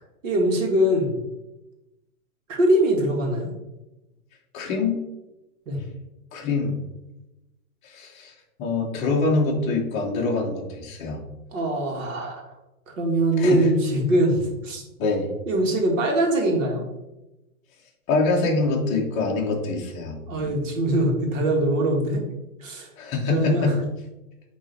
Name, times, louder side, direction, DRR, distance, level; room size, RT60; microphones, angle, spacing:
voice 1, 0.2-1.2 2.5-3.5 5.7-5.8 11.5-12.4 13.0-14.4 14.6-14.8 15.5-16.8 20.3-22.2 22.6-22.9 23.3-23.7, right 1 dB, 60° right, 1 dB, 1.9 m, -22 dB
voice 2, 4.5-5.0 6.3-6.8 7.8-8.3 8.6-11.2 13.4-13.7 15.0-15.3 18.1-20.2 23.0-23.7, left 3 dB, 15° left, -1 dB, 0.7 m, -24 dB
8.9 x 3.1 x 4.0 m, 0.99 s
hypercardioid pair, 160°, 44 cm